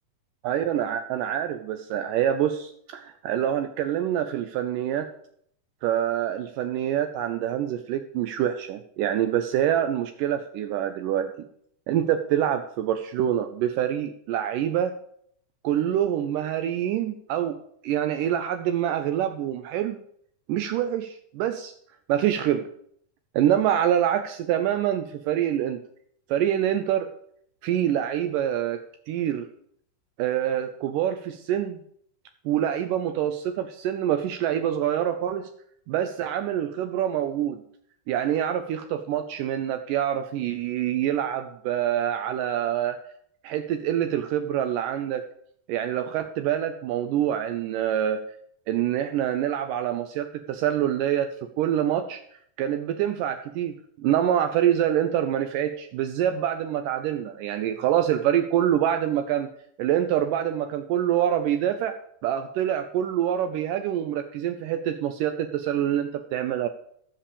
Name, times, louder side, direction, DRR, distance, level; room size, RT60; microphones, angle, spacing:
voice 1, 0.4-5.1 5.8-11.3 11.9-14.9 15.6-17.6 17.8-20.0 20.5-21.7 22.1-22.7 23.3-25.8 26.3-27.1 27.6-28.8 29.1-29.5 30.2-31.8 32.5-35.5 35.9-37.6 38.1-43.0 43.4-45.2 45.7-48.2 48.7-52.2 52.6-59.5 59.8-61.9 62.2-66.7, right 10 dB, 80° right, 8 dB, 2.2 m, -26 dB
14.5 x 5.8 x 7.0 m, 0.67 s
omnidirectional pair, 3.9 m